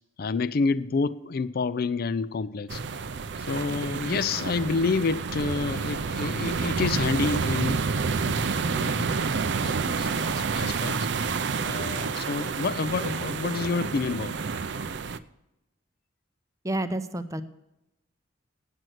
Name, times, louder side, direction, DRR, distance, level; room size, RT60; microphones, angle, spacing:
voice 1, 0.2-2.8 3.5-7.8 8.2-8.4 8.7-9.2 9.5-10.9 11.6-14.4, left 4 dB, 50° left, 15 dB, 0.4 m, -28 dB
sound 1, 2.7-15.2, right 5 dB, 60° right, 0.5 m, -29 dB
voice 2, 16.6-17.4, right 1 dB, 15° right, 10 dB, 0.6 m, -29 dB
9.2 x 7.8 x 7.8 m, 0.90 s
head